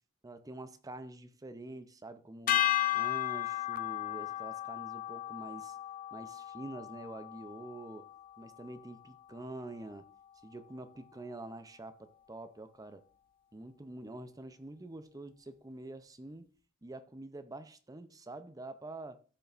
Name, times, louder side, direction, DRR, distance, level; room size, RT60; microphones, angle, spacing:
voice 1, 0.2-2.7 2.9-5.8 6.1-8.1 8.4-10.1 10.4-13.1 13.5-16.5 16.8-19.2, right 2 dB, 15° right, 0.6 m, -46 dB
sound 1, 2.5-8.8, left 13 dB, 40° left, 0.4 m, -35 dB
13.5 x 5.5 x 2.5 m
head